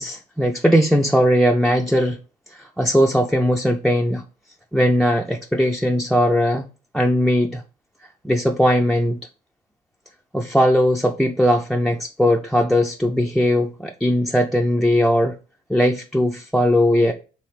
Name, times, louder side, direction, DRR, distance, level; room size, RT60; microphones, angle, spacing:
voice 1, 0.0-2.2 2.5-4.2 4.7-6.7 6.9-7.6 8.2-9.2 10.3-15.4 15.7-17.1, equal, ahead, 0.3 m, -19 dB
3.2 x 3.2 x 4.4 m
cardioid pair, 110°, 17 cm